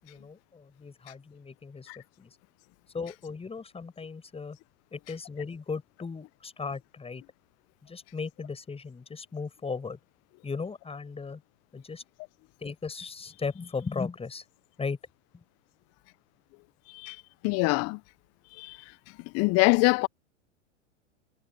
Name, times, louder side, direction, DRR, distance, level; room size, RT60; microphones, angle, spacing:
voice 1, 0.0-1.9 2.2-2.3 2.9-4.6 4.9-7.2 7.8-10.0 10.4-11.4 11.7-12.0 12.6-14.4 14.8-15.0 15.3-15.4, left 4 dB, 15° left, 6.9 m, -37 dB
voice 2, 17.4-18.0 18.6-18.8 19.3-20.1, left 27 dB, 40° left, 0.8 m, -24 dB
hypercardioid pair, 95°, 37 cm